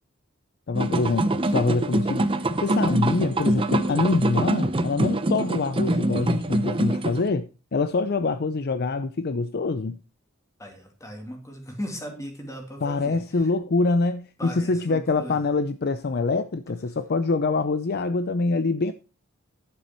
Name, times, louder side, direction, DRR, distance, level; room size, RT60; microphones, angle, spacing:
voice 1, 0.7-2.3 2.6-10.0 12.8-18.9, left 3 dB, 50° left, 0.5 m, -25 dB
sound 1, 0.7-7.3, right 1 dB, 25° right, 0.7 m, -24 dB
voice 2, 10.6-13.2 14.4-15.4, equal, 15° left, 2.4 m, -37 dB
11.0 x 7.0 x 4.4 m
head